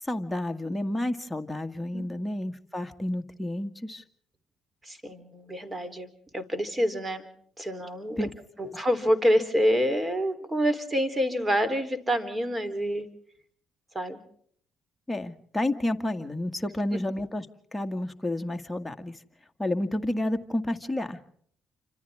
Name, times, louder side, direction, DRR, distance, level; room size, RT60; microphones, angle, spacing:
voice 1, 0.0-4.0 8.2-8.3 8.6-8.8 15.1-17.5 17.7-19.2 19.6-21.2, left 1 dB, 10° left, 5 dB, 2.0 m, -30 dB
voice 2, 4.8-7.3 7.6-8.2 8.6-13.1 13.9-14.2 16.9-17.0, equal, 20° right, 10 dB, 3.7 m, -27 dB
29.0 x 26.0 x 3.7 m, 0.62 s
supercardioid pair, 65°, 0 cm